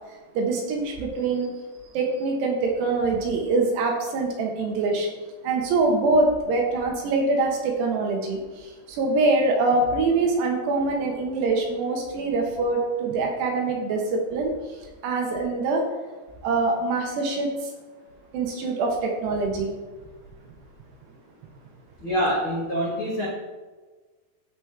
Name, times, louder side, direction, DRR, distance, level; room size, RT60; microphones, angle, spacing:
voice 1, 0.4-1.5 1.9-5.1 5.4-14.5 15.0-15.8 16.4-17.5 18.3-19.7, right 3 dB, 75° right, 1 dB, 2.9 m, -24 dB
voice 2, 22.0-23.3, equal, 70° left, -7 dB, 1.2 m, -25 dB
15.0 x 5.2 x 3.4 m, 1.3 s
omnidirectional pair, 5.5 m